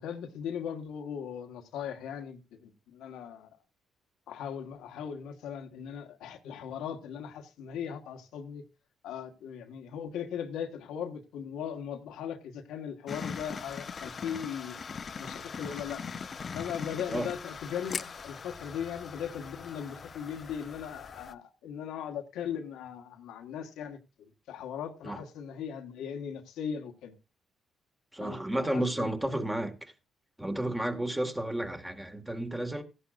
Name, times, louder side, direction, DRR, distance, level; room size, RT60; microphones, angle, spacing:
voice 1, 0.0-3.5 4.3-8.6 9.0-14.7 15.2-16.0 16.5-27.1 28.2-29.4, left 8 dB, 90° left, 1.4 m, -39 dB
sound 1, 13.1-21.3, left 5 dB, 40° left, 0.7 m, -41 dB
voice 2, 28.1-29.9 30.4-32.8, right 1 dB, 10° right, 1.8 m, -32 dB
15.5 x 11.0 x 2.5 m
cardioid pair, 90°, 0 cm